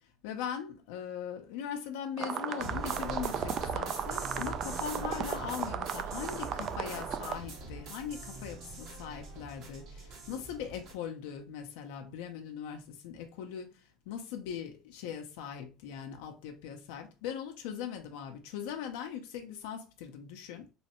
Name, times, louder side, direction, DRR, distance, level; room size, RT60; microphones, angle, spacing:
voice 1, 0.2-20.7, left 8 dB, 85° left, 0.5 m, -40 dB
sound 1, 2.2-7.4, right 8 dB, 45° right, 0.3 m, -36 dB
sound 2, 2.6-10.9, right 2 dB, 60° right, 1.3 m, -42 dB
3.1 x 3.1 x 2.9 m
supercardioid pair, 120°, 0 cm